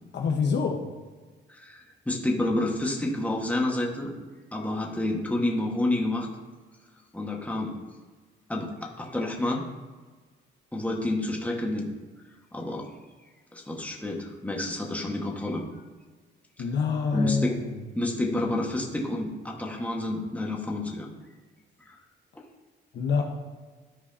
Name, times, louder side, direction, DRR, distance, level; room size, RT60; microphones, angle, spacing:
voice 1, 0.1-0.8 16.6-17.8 22.9-23.2, left 5 dB, 60° left, 1 dB, 1.2 m, -26 dB
voice 2, 1.5-4.1 4.5-6.3 7.1-7.8 8.5-9.6 10.7-11.9 12.5-12.9 13.5-15.6 17.1-17.6 17.9-21.1 21.9-22.0, left 1 dB, 5° left, -1 dB, 1.6 m, -29 dB
13.5 x 4.7 x 2.8 m, 1.4 s
cardioid pair, 90°, 20 cm